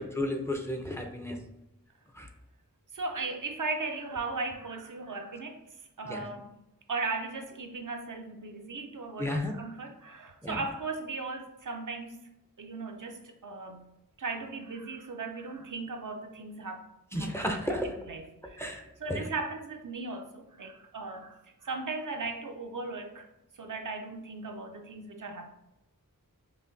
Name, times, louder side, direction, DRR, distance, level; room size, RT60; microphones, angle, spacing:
voice 1, 0.0-1.4 2.1-2.3 6.0-6.3 9.2-9.5 10.4-10.7 17.1-18.1 18.6-19.3, left 1 dB, 10° left, 3 dB, 0.5 m, -33 dB
voice 2, 2.9-6.5 6.9-12.2 12.6-13.9 14.2-17.3 17.6-23.3 23.5-25.5, right 3 dB, 65° right, 4 dB, 0.5 m, -37 dB
5.6 x 2.2 x 2.6 m, 0.88 s
wide cardioid pair, 45°, 34 cm